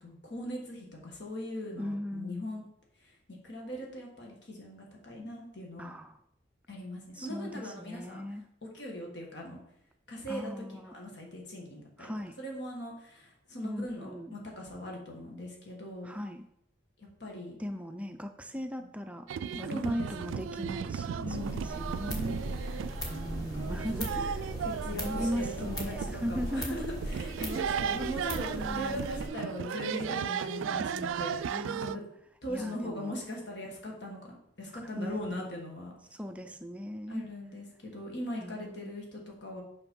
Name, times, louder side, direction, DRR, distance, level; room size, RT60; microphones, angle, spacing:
voice 1, 0.0-2.6 3.0-5.9 6.7-8.2 8.6-9.6 10.1-12.1 12.4-16.1 17.0-17.6 19.7-20.4 21.2-21.7 23.5-23.8 24.1-24.2 24.6-32.0 32.4-35.9 37.1-39.6, left 1 dB, 60° left, -1 dB, 1.6 m, -40 dB
voice 2, 1.8-2.5 5.8-6.2 7.2-8.4 10.3-10.9 12.0-12.4 13.6-14.4 16.0-16.4 17.6-24.5 24.9-26.8 28.5-29.1 31.5-32.0 32.5-33.1 35.0-35.5 36.1-37.3 38.4-38.9, equal, 5° right, 7 dB, 0.3 m, -38 dB
sound 1, 19.3-32.0, right 7 dB, 90° right, 0.3 m, -35 dB
sound 2, 21.3-29.3, equal, 20° left, 1.2 m, -38 dB
5.7 x 5.2 x 5.3 m, 0.76 s
head